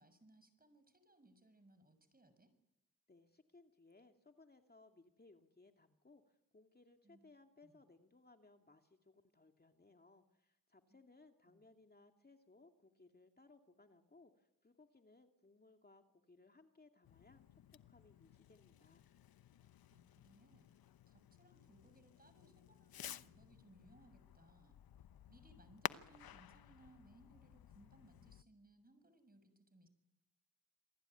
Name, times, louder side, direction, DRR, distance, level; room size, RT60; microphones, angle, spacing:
voice 1, 0.0-2.5 7.0-7.2 7.6-7.8 10.9-11.0 11.5-11.7 19.9-20.7 21.1-24.8 25.3-29.9, right 2 dB, 25° right, 11 dB, 6.8 m, -66 dB
voice 2, 3.1-19.0, left 3 dB, 25° left, 4 dB, 2.4 m, -65 dB
Fireworks, 17.0-28.4, left 11 dB, 80° left, 1.0 m, -53 dB
28.0 x 20.5 x 9.2 m, 0.92 s
cardioid pair, 60°, 35 cm